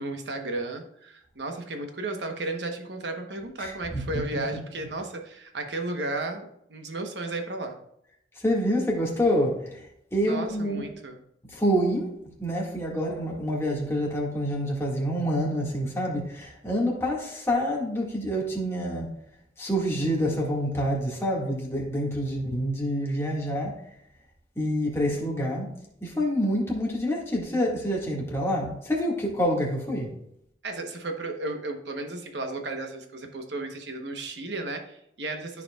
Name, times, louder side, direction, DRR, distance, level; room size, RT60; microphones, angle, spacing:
voice 1, 0.0-7.8 10.2-11.2 30.6-35.6, right 2 dB, 80° right, 4 dB, 1.1 m, -34 dB
voice 2, 3.6-4.0 8.4-9.8 10.1-10.9 11.5-19.1 19.6-23.7 24.6-25.7 26.0-30.1, equal, 15° left, -3 dB, 1.9 m, -27 dB
13.5 x 4.8 x 2.4 m, 0.76 s
head